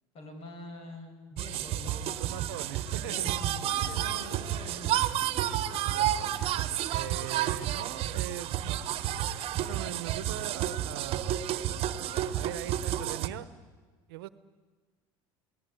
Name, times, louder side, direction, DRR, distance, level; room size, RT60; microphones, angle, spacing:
voice 1, 0.1-2.3 2.6-5.2, left 1 dB, 50° left, 5 dB, 6.3 m, -45 dB
sound 1, 1.4-13.3, right 11 dB, 50° right, 1.3 m, -31 dB
voice 2, 2.1-3.3 5.9-8.8 9.6-11.4 12.3-13.5 14.1-14.3, right 14 dB, 90° right, 15 dB, 1.1 m, -41 dB
22.0 x 18.5 x 9.6 m, 1.4 s
supercardioid pair, 105°, 12 cm